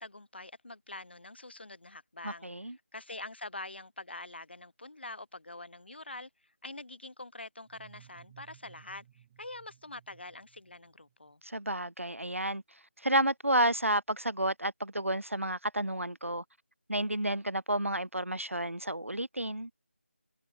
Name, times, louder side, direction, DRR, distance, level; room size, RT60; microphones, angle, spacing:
voice 1, 0.0-2.5 2.9-6.3 6.6-9.1 9.4-11.4, left 2 dB, 55° left, 1.8 m, -45 dB
voice 2, 2.2-2.8 11.4-12.6 13.0-16.4 16.9-19.7, right 1 dB, 85° right, 0.9 m, -31 dB
sound 1, 7.6-11.3, right 11 dB, 15° right, 7.7 m, -59 dB
figure-of-eight pair, 165°, 7 cm